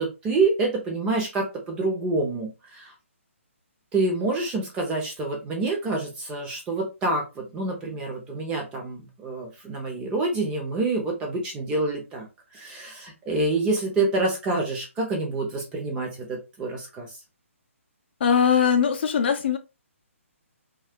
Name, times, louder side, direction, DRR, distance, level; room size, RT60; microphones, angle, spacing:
voice 1, 0.0-2.9 3.9-12.3 12.5-17.1, right 3 dB, 15° right, 0.7 m, -27 dB
voice 2, 18.2-19.6, left 7 dB, 45° left, 0.5 m, -21 dB
2.4 x 2.0 x 3.5 m
hypercardioid pair, 160°, 7 cm